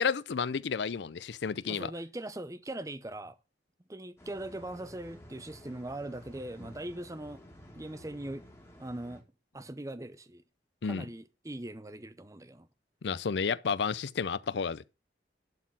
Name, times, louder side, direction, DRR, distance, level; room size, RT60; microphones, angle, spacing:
voice 1, 0.0-1.9 10.8-11.1 13.0-14.9, left 6 dB, 75° left, 0.5 m, -31 dB
voice 2, 1.7-3.4 3.9-7.4 7.7-8.4 8.8-9.2 9.5-10.4 10.8-12.7, right 1 dB, 20° right, 0.6 m, -40 dB
sound 1, 4.2-9.2, equal, 15° left, 1.8 m, -52 dB
11.5 x 4.2 x 7.4 m
head